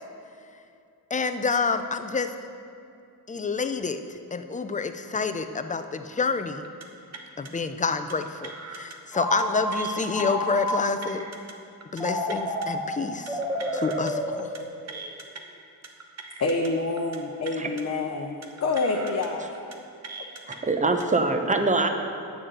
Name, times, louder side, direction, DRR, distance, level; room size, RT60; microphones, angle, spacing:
voice 1, 1.1-2.3 3.3-4.0 4.3-6.6 7.4-11.2 11.9-13.4 13.7-14.5, left 4 dB, 20° left, 9 dB, 0.5 m, -28 dB
sound 1, 6.6-6.9 7.1-7.5 8.1-9.0 9.2-9.4 9.7-10.2 10.7-11.5 11.8-12.0 12.3-12.7 13.3-14.1 14.4-14.6 14.9-15.4 15.8-16.7 17.0-17.2 17.4-17.8 18.4-19.3 19.5-19.8 20.0-20.6 21.0-21.2, right 4 dB, 40° right, 1.1 m, -41 dB
Telephone, 9.1-11.1 12.0-15.0, equal, ahead, 1.2 m, -30 dB
voice 2, 16.4-19.6, left 3 dB, 40° left, 1 dB, 0.8 m, -27 dB
voice 3, 20.5-21.9, right 3 dB, 20° right, 6 dB, 0.8 m, -23 dB
9.4 x 6.3 x 7.9 m, 2.5 s
wide cardioid pair, 130°, 39 cm